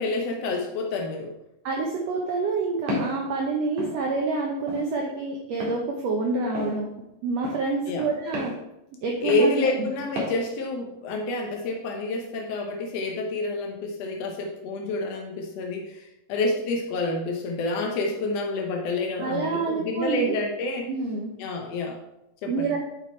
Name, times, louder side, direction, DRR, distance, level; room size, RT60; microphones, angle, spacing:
voice 1, 0.0-1.3 7.9-8.1 9.2-20.9 21.4-22.0 22.4-22.7, left 2 dB, 80° left, 1 dB, 1.4 m, -28 dB
voice 2, 1.6-6.9 7.2-8.5 9.0-9.7 19.2-20.4 20.9-21.3 22.5-22.8, right 3 dB, 80° right, -1 dB, 1.5 m, -27 dB
Walk footsteps, 2.9-3.2 3.8-3.9 4.7-4.9 5.6-5.8 6.5-6.7 7.4-7.6 8.3-8.5 9.3-9.5 10.2-10.3, left 1 dB, 60° right, 3.2 m, -30 dB
8.7 x 4.6 x 4.4 m, 0.88 s
omnidirectional pair, 4.0 m